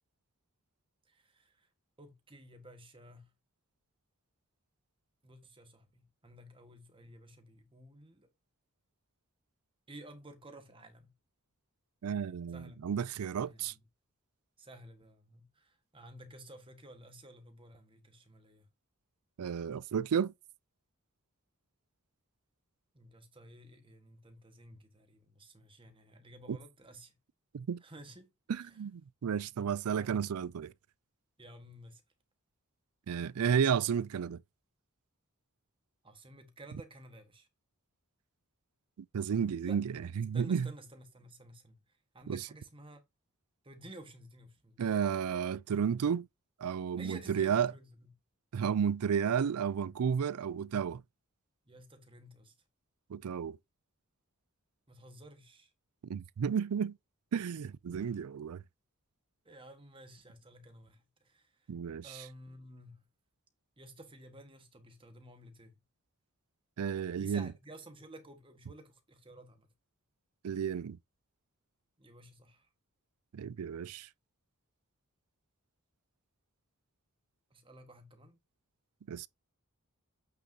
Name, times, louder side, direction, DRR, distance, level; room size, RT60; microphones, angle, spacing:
voice 1, 1.0-1.7 2.0-3.3 5.2-8.3 9.9-11.1 12.5-12.9 13.5-13.8 14.6-18.7 22.9-27.1 27.8-28.8 31.4-32.0 36.0-37.5 39.6-39.8 40.3-43.0 43.6-44.9 47.0-48.1 51.6-52.5 54.9-55.7 59.4-61.7 62.0-63.1 63.8-65.8 67.2-69.7 72.0-72.7 77.5-78.4, right 1 dB, 25° right, 1.5 m, -53 dB
voice 2, 12.0-13.7 19.4-20.3 26.5-26.6 27.5-27.8 28.5-30.7 33.1-34.4 39.1-40.7 42.3-42.4 44.8-46.3 46.6-47.7 48.5-51.0 53.1-53.6 56.1-57.0 57.3-58.6 61.7-62.2 66.8-67.5 70.4-71.0 73.3-74.1 79.1-79.3, right 7 dB, 85° right, 0.4 m, -32 dB
8.4 x 6.0 x 2.8 m
head